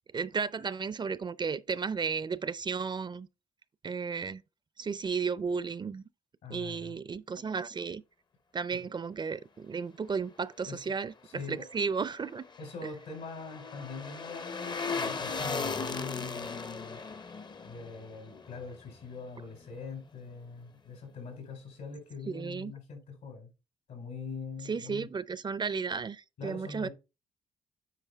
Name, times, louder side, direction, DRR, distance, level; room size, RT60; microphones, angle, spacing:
voice 1, 0.1-3.3 3.8-4.4 4.8-6.0 6.5-8.0 8.5-12.4 22.3-22.7 24.7-26.9, right 5 dB, 35° right, 0.5 m, -34 dB
voice 2, 6.4-6.9 8.7-8.9 10.6-10.8 11.2-11.7 12.6-17.0 17.6-23.5 23.9-25.1 26.4-26.9, left 4 dB, 80° left, 4.3 m, -43 dB
sound 1, 12.1-19.3 19.6-19.7, left 4 dB, 30° left, 0.6 m, -38 dB
9.1 x 4.7 x 3.5 m
cardioid pair, 75°, 14 cm